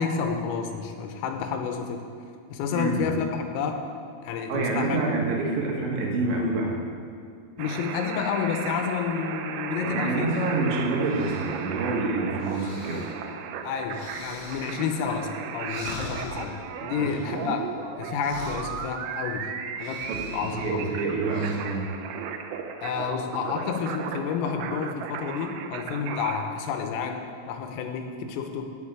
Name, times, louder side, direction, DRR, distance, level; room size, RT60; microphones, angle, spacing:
voice 1, 0.0-2.0 2.5-3.9 4.2-5.0 7.6-10.5 13.6-19.5 19.8-20.9 22.8-28.8, left 6 dB, 90° left, 5 dB, 3.5 m, -30 dB
voice 2, 2.7-3.1 4.5-6.8 9.8-13.0 17.0-17.1 20.1-21.9, right 3 dB, 70° right, -1 dB, 3.3 m, -27 dB
sound 1, 7.6-26.4, right 7 dB, 90° right, 3.4 m, -36 dB
sound 2, 10.3-21.5, left 2 dB, 60° left, 2.5 m, -43 dB
8.0 x 7.5 x 8.8 m, 2.3 s
omnidirectional pair, 5.8 m